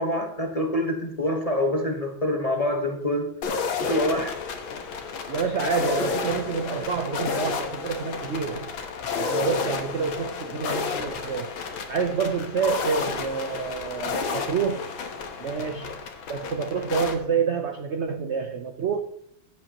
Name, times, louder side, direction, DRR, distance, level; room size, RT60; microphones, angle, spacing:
voice 1, 0.0-3.3 3.8-4.4, left 1 dB, 20° left, 2 dB, 1.1 m, -26 dB
sound 1, 3.4-17.1, left 5 dB, 85° left, 2.0 m, -31 dB
voice 2, 5.3-8.7 9.2-11.5 11.9-14.9 15.4-16.0 16.3-19.0, right 6 dB, 70° right, 6 dB, 0.6 m, -28 dB
16.5 x 7.6 x 2.9 m, 0.70 s
omnidirectional pair, 2.1 m